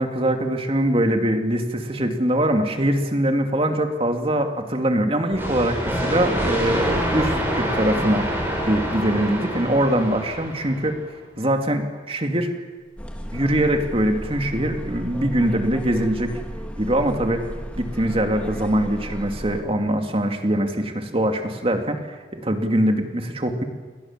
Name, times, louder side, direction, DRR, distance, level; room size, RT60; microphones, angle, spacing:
voice 1, 0.0-11.0 11.4-12.5 13.3-16.4 16.8-17.5 17.7-23.6, right 1 dB, 35° right, 5 dB, 2.6 m, -23 dB
sound 1, 5.3-11.0, equal, 15° right, 7.5 m, -26 dB
sound 2, 13.0-19.6, equal, 10° left, 2.5 m, -34 dB
29.5 x 22.5 x 7.5 m, 1.4 s
head